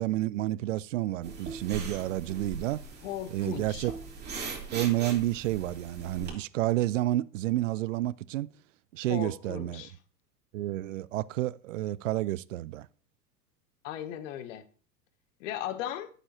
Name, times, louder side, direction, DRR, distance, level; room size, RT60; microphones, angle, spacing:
voice 1, 0.0-2.8 3.3-3.9 4.7-8.5 8.9-9.9 10.5-12.9, right 15 dB, 50° right, 0.5 m, -30 dB
sound 1, 1.2-6.3, right 4 dB, 20° right, 3.2 m, -40 dB
voice 2, 3.0-3.9 9.1-9.9 13.8-14.6 15.4-16.1, left 11 dB, 50° left, 1.1 m, -37 dB
12.5 x 7.0 x 2.9 m
figure-of-eight pair, 95°, 50 cm